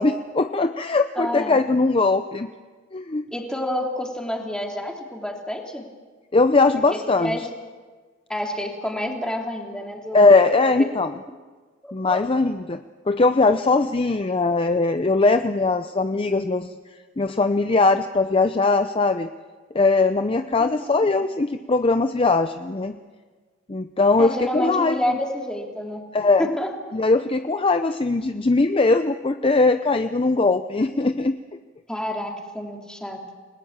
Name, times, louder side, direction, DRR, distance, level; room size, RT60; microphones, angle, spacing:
voice 1, 0.0-2.5 2.9-3.2 6.3-7.4 10.1-11.1 11.9-12.8 13.1-16.7 17.2-19.3 19.7-23.0 23.7-25.2 26.1-26.5 26.9-31.3, left 3 dB, 30° left, 9 dB, 0.6 m, -20 dB
voice 2, 1.1-1.6 3.3-5.9 6.9-7.5 8.3-10.4 10.8-10.9 11.8-12.2 20.6-21.0 24.2-26.0 26.4-26.7 31.9-33.2, left 1 dB, 5° left, 1 dB, 3.0 m, -29 dB
29.5 x 19.5 x 7.3 m, 1.4 s
head